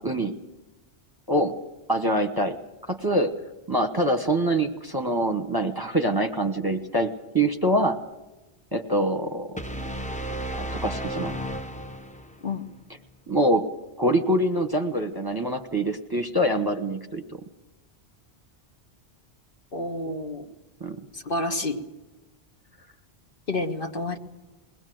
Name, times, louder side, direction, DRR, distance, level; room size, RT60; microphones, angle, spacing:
voice 1, 0.0-0.3 1.3-1.5 1.9-2.6 2.9-3.3 3.7-8.0 8.7-9.5 10.6-11.4 13.3-13.6 14.0-17.2 20.8-21.0, right 1 dB, 20° right, 6 dB, 1.1 m, -24 dB
sound 1, 9.6-12.5, right 1 dB, 10° left, 0.7 m, -33 dB
voice 2, 19.7-20.5 21.1-21.8 23.5-24.2, left 2 dB, 55° left, 5 dB, 1.6 m, -29 dB
21.5 x 19.0 x 7.8 m, 1.1 s
omnidirectional pair, 1.1 m